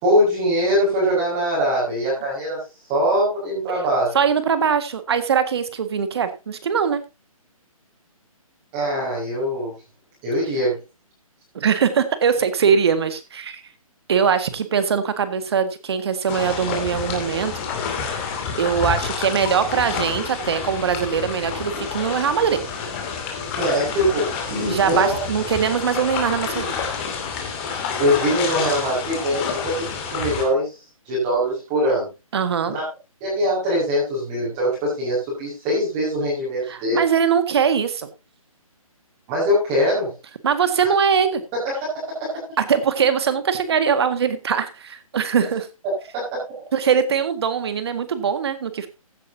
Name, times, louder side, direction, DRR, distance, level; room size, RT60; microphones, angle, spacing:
voice 1, 0.0-2.6 2.9-4.2 8.7-9.7 10.2-10.8 23.5-25.2 27.6-32.1 32.7-32.8 33.2-37.0 39.3-40.1 41.8-42.3 46.1-46.4, equal, 20° right, -6 dB, 5.4 m, -22 dB
voice 2, 4.1-7.0 11.5-13.6 14.1-17.5 18.6-22.6 24.7-26.9 32.3-32.8 36.7-38.1 40.4-41.4 42.6-45.7 46.7-48.9, right 7 dB, 45° right, 11 dB, 1.8 m, -21 dB
sound 1, 16.3-30.4, left 6 dB, 20° left, 2.7 m, -29 dB
15.5 x 10.5 x 2.8 m, 0.27 s
hypercardioid pair, 165°, 19 cm